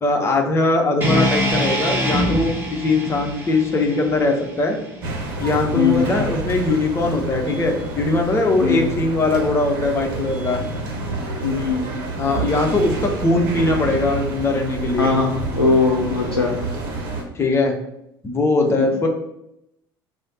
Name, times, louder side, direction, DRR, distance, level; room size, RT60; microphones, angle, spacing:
voice 1, 0.0-4.8 5.4-10.6 12.2-15.1 17.3-17.7 18.2-19.1, left 2 dB, 20° left, 2 dB, 0.7 m, -20 dB
sound 1, 1.0-5.2, equal, 15° right, 1.2 m, -24 dB
sound 2, 5.0-17.2, right 2 dB, 65° right, 0.8 m, -28 dB
voice 2, 5.7-6.1 8.6-8.9 11.4-11.9 15.0-16.6 18.8-18.9, left 4 dB, 85° left, -2 dB, 0.5 m, -19 dB
3.2 x 2.0 x 4.1 m, 0.82 s
figure-of-eight pair, 60°, 12 cm